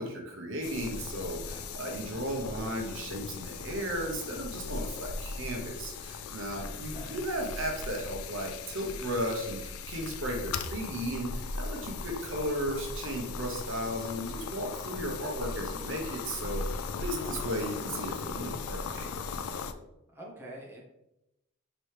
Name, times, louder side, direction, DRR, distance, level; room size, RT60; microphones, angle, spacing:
voice 1, 0.0-16.8 17.0-19.1, equal, 65° right, 1 dB, 0.9 m, -35 dB
sound 1, 0.6-19.7, left 4 dB, 85° left, 0.4 m, -38 dB
voice 2, 6.6-7.2 17.2-17.5 20.1-20.8, right 1 dB, 10° right, -4 dB, 0.8 m, -47 dB
4.3 x 3.0 x 3.3 m, 0.88 s
head